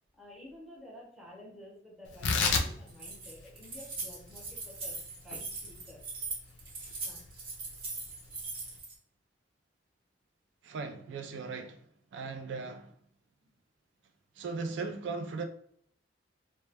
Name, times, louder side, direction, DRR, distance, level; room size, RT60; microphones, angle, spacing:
voice 1, 0.1-6.1 6.5-6.6 7.0-7.3 13.4-13.5, left 1 dB, ahead, 0.8 m, -52 dB
Tearing, 2.1-8.8, left 4 dB, 70° left, 0.4 m, -35 dB
Keys jangling, 2.9-8.9, right 3 dB, 55° right, 1.1 m, -40 dB
voice 2, 10.6-11.8 12.1-12.9 14.4-15.4, right 4 dB, 70° right, 0.3 m, -38 dB
2.1 x 2.1 x 3.2 m
head